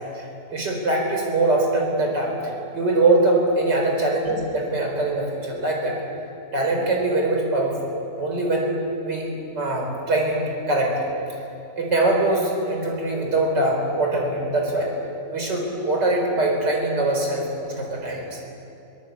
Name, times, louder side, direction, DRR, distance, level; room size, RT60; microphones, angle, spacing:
voice 1, 0.1-2.3 2.7-6.0 6.5-7.9 8.2-8.7 9.0-10.4 10.7-11.1 11.8-14.9 15.3-18.4, right 2 dB, 75° right, 1 dB, 4.8 m, -22 dB
23.5 x 18.0 x 8.4 m, 2.8 s
omnidirectional pair, 1.9 m